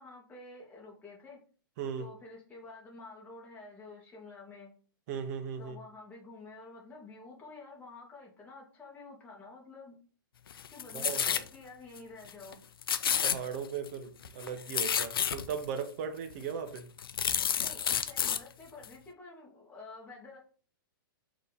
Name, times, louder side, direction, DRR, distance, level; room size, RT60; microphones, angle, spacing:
voice 1, 0.0-1.4 2.0-4.7 5.6-10.0 10.7-12.6 17.6-20.4, left 3 dB, 15° left, 1.7 m, -50 dB
voice 2, 1.8-2.1 5.1-5.8 10.9-11.4 13.2-16.9, right 7 dB, 45° right, 0.7 m, -37 dB
sound 1, 10.5-11.5 12.0-12.1 12.3-12.5 12.8-13.9 14.2-15.6 16.3-16.4 16.8-18.4 18.8-18.9, left 8 dB, 80° left, 0.4 m, -30 dB
4.0 x 2.8 x 3.9 m
hypercardioid pair, 130°, 12 cm